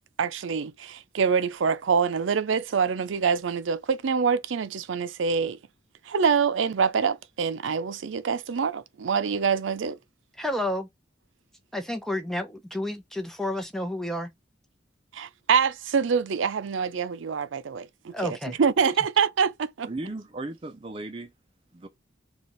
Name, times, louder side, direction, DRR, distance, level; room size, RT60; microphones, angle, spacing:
voice 1, 0.2-5.6 6.1-10.0 15.1-19.9, right 6 dB, 90° right, 0.5 m, -25 dB
voice 2, 10.4-10.9 11.7-14.3 18.1-18.6, left 1 dB, ahead, 0.8 m, -30 dB
voice 3, 19.9-21.3 21.7-21.9, right 2 dB, 30° right, 0.5 m, -36 dB
6.7 x 2.4 x 3.0 m
head